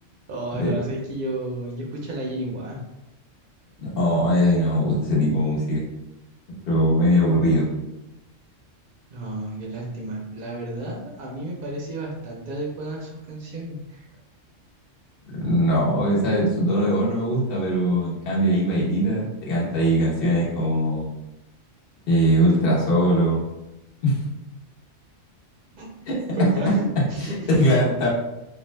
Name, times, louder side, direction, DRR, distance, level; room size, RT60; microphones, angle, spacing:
voice 1, 0.3-2.8 9.1-14.1 25.7-25.9 26.3-27.7, right 1 dB, 60° right, -2 dB, 0.5 m, -32 dB
voice 2, 3.8-5.8 6.7-7.7 15.3-21.1 22.1-23.4 24.0-24.3 26.1-26.7 27.5-28.1, equal, 50° left, -5 dB, 1.1 m, -21 dB
2.6 x 2.3 x 3.2 m, 0.97 s
omnidirectional pair, 1.3 m